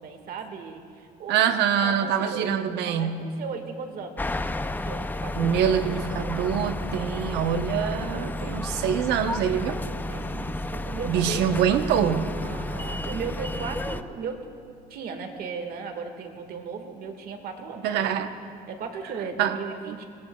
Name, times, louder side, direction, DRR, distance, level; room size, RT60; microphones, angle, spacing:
voice 1, 0.0-2.5 2.9-4.3 4.8-5.5 10.1-11.6 12.4-14.5 14.9-18.1 18.7-20.0, right 5 dB, 65° right, 5 dB, 1.8 m, -36 dB
voice 2, 1.3-3.2 5.4-9.8 11.1-12.3 17.8-18.3 19.4-19.6, right 8 dB, 85° right, 8 dB, 0.9 m, -25 dB
sound 1, 4.2-14.0, left 1 dB, 10° left, 0.4 m, -32 dB
25.0 x 18.5 x 2.3 m, 2.3 s
cardioid pair, 110°, 17 cm